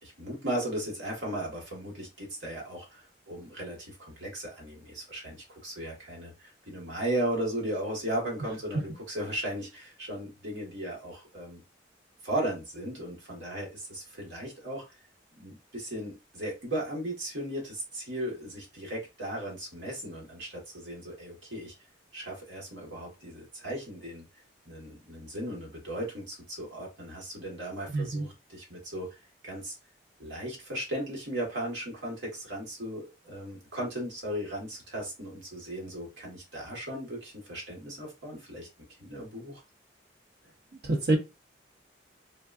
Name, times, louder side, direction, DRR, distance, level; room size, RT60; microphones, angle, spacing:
voice 1, 0.0-11.6 12.2-14.8 15.4-21.7 22.1-24.2 24.6-29.7 30.2-38.7 39.0-39.6, right 1 dB, 75° right, 1.5 m, -36 dB
voice 2, 27.9-28.3 40.8-41.2, right 2 dB, 60° right, 0.8 m, -26 dB
3.9 x 2.3 x 2.4 m
head